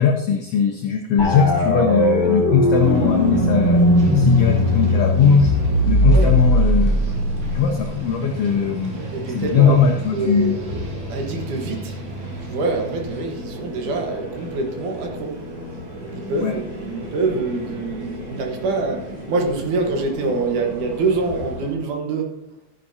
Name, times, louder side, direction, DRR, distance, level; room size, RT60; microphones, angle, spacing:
voice 1, 0.0-3.8 4.1-5.5 5.9-7.0 7.5-9.0 9.3-10.6 16.4-16.6, left 6 dB, 70° left, 1.6 m, -19 dB
sound 1, 1.2-7.8, left 1 dB, 35° left, 2.9 m, -18 dB
sound 2, 2.8-21.7, right 2 dB, 70° right, 4.2 m, -32 dB
sound 3, 4.0-13.2, right 2 dB, 40° right, 2.1 m, -34 dB
voice 2, 9.1-9.8 10.1-10.7 11.1-12.0 12.5-15.3 16.1-22.3, right 3 dB, 90° right, 2.9 m, -25 dB
13.0 x 10.0 x 2.8 m
omnidirectional pair, 3.4 m